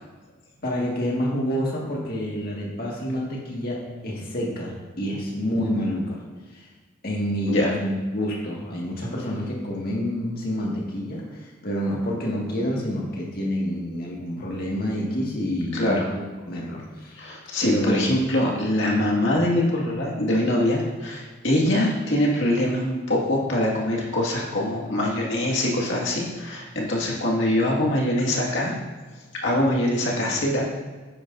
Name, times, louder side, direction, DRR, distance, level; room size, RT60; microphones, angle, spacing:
voice 1, 0.6-6.2 6.5-6.7 7.0-17.3 17.6-18.1, equal, 50° left, -3 dB, 2.0 m, -28 dB
voice 2, 15.7-16.1 17.2-28.7 29.4-30.7, left 1 dB, 70° left, -3 dB, 2.0 m, -23 dB
10.0 x 9.6 x 2.7 m, 1.4 s
head